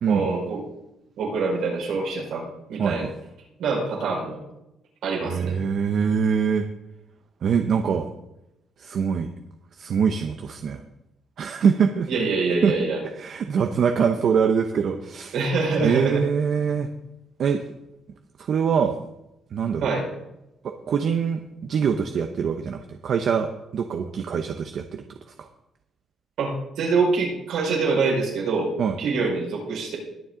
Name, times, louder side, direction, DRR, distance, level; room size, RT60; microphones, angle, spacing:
voice 1, 0.1-0.6 1.2-3.0 3.6-4.4 5.0-5.5 12.1-13.0 15.3-16.2 19.8-20.1 26.4-28.7 29.0-30.0, right 4 dB, 80° right, -2 dB, 5.1 m, -25 dB
voice 2, 2.8-3.1 5.2-6.7 7.4-8.1 8.8-9.3 9.7-10.8 11.4-12.1 12.6-12.7 13.2-15.4 15.8-16.9 17.4-17.6 18.4-19.0 19.5-19.9 20.6-25.5 28.8-29.0, right 6 dB, 60° right, 6 dB, 0.9 m, -24 dB
20.5 x 7.3 x 3.8 m, 0.89 s
cardioid pair, 90°, 0 cm